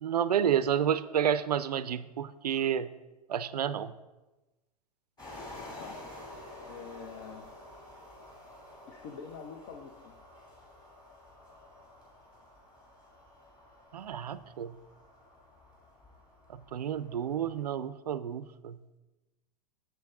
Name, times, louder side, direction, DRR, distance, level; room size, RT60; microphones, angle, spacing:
voice 1, 0.0-2.9 3.3-3.9 13.9-14.8 16.7-18.8, right 9 dB, 75° right, 15 dB, 0.5 m, -30 dB
sound 1, 5.2-17.6, left 1 dB, 20° left, 2.9 m, -50 dB
voice 2, 6.7-7.5 8.9-10.1, left 6 dB, 50° left, 3 dB, 0.9 m, -45 dB
7.5 x 6.9 x 3.7 m, 1.1 s
figure-of-eight pair, 100°, 21 cm